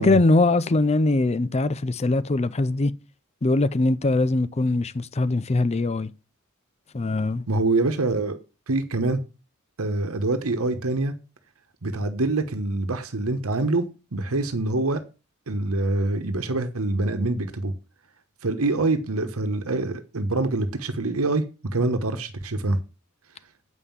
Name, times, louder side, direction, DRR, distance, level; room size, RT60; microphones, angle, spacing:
voice 1, 0.0-2.9 3.4-6.1 6.9-7.4, left 2 dB, 30° left, 0.5 m, -22 dB
voice 2, 7.5-8.4 8.7-9.2 9.8-11.1 11.8-13.9 14.1-15.0 15.5-17.7 18.4-21.4 21.7-22.8, right 2 dB, 80° right, 1.1 m, -25 dB
8.2 x 5.6 x 7.2 m
head